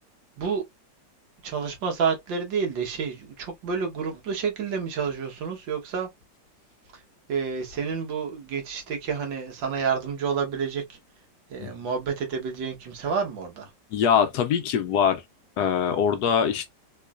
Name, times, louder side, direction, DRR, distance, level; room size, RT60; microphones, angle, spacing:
voice 1, 1.4-6.1 6.9-7.0 7.3-11.0 11.5-13.7, right 6 dB, 85° right, 1.8 m, -29 dB
voice 2, 13.9-15.2 15.6-16.7, left 7 dB, 75° left, 1.1 m, -23 dB
3.7 x 3.1 x 2.4 m
omnidirectional pair, 2.0 m